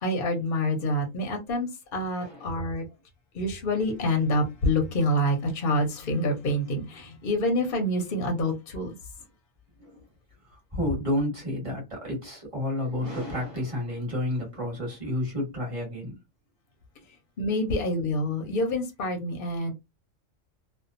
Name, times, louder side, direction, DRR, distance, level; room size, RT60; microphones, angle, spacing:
voice 1, 0.0-2.9 3.3-9.0 17.1-19.7, left 1 dB, 50° left, 0.7 m, -27 dB
voice 2, 2.2-2.5 9.8-10.0 10.5-16.1, left 1 dB, 25° right, 1.3 m, -30 dB
2.7 x 2.2 x 2.5 m
omnidirectional pair, 1.3 m